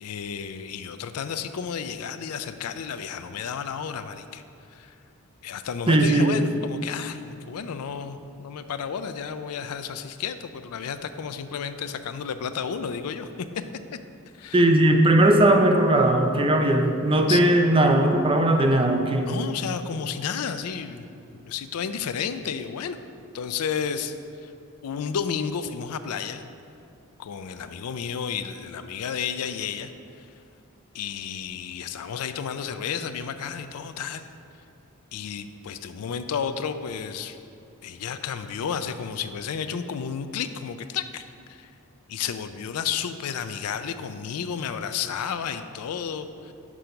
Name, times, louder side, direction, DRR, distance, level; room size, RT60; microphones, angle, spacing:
voice 1, 0.0-4.4 4.7-4.9 5.4-13.3 14.3-14.7 17.3-17.4 19.2-21.0 21.3-23.0 23.3-24.2 24.4-24.5 24.8-26.4 27.2-29.9 30.2-30.3 30.9-34.3 35.1-37.4 37.8-41.2 41.5-41.7 42.1-46.5, left 7 dB, 85° left, 10 dB, 0.4 m, -32 dB
voice 2, 5.9-6.4 14.5-19.3, right 1 dB, 25° right, 4 dB, 0.5 m, -19 dB
6.2 x 5.1 x 5.7 m, 2.6 s
head